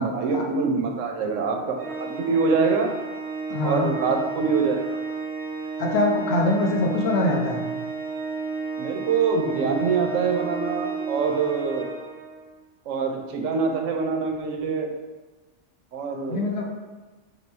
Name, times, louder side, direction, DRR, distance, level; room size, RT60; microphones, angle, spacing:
voice 1, 0.0-2.9 3.6-5.0 8.8-11.9 12.9-14.9 15.9-16.4, right 5 dB, 85° right, 2 dB, 1.0 m, -25 dB
Organ, 1.8-12.6, right 4 dB, 55° right, 0.7 m, -32 dB
voice 2, 3.5-3.9 5.8-7.6 16.3-16.7, left 2 dB, 60° left, 0 dB, 0.8 m, -23 dB
3.3 x 3.0 x 4.3 m, 1.2 s
omnidirectional pair, 1.3 m